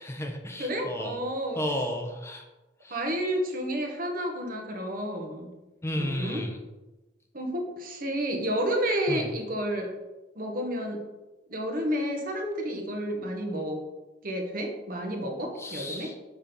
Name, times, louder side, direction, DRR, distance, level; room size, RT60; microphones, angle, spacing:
voice 1, 0.0-1.2 1.6-2.4 2.8-3.0 5.8-6.6 9.1-9.3 15.6-16.2, left 1 dB, 15° left, 3 dB, 0.7 m, -33 dB
voice 2, 0.6-1.6 2.9-5.5 6.0-6.4 7.3-9.9 10.3-11.0 11.5-13.8 14.2-16.1, equal, 50° right, 3 dB, 1.2 m, -30 dB
5.9 x 4.4 x 5.2 m, 1.1 s
head